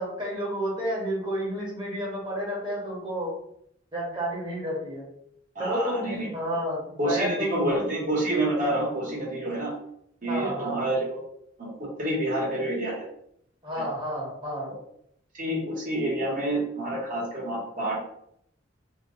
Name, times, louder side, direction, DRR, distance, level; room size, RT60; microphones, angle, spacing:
voice 1, 0.0-3.3 3.9-5.1 5.6-7.9 10.3-10.8 13.6-14.7, equal, 25° right, -4 dB, 1.2 m, -31 dB
voice 2, 5.5-6.3 7.0-9.7 10.2-11.2 11.6-13.0 15.4-18.0, right 1 dB, 45° right, -4 dB, 1.2 m, -28 dB
2.9 x 2.3 x 3.6 m, 0.72 s
head